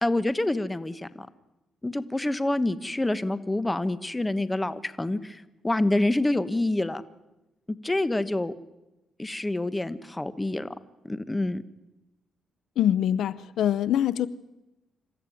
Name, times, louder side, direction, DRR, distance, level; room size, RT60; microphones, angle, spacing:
voice 1, 0.0-1.3 1.8-7.0 7.7-8.5 9.2-10.7 11.0-11.6, left 2 dB, 15° left, 14 dB, 1.1 m, -27 dB
voice 2, 12.8-14.3, left 10 dB, 75° left, 17 dB, 0.7 m, -24 dB
27.0 x 14.0 x 9.2 m, 1.0 s
cardioid pair, 100°, 0 cm